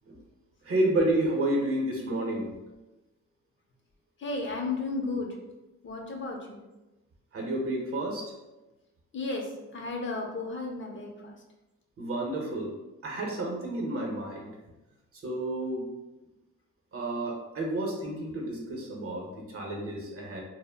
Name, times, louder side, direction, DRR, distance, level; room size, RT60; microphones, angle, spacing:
voice 1, 0.6-2.5 7.3-8.3 12.0-12.7 13.0-14.5 15.2-15.9 16.9-20.4, right 1 dB, 50° right, 0 dB, 0.8 m, -30 dB
voice 2, 4.2-5.3 5.8-6.6 9.1-11.3, left 3 dB, 40° left, 1 dB, 0.5 m, -33 dB
2.1 x 2.0 x 3.3 m, 1.0 s
cardioid pair, 70°, 30 cm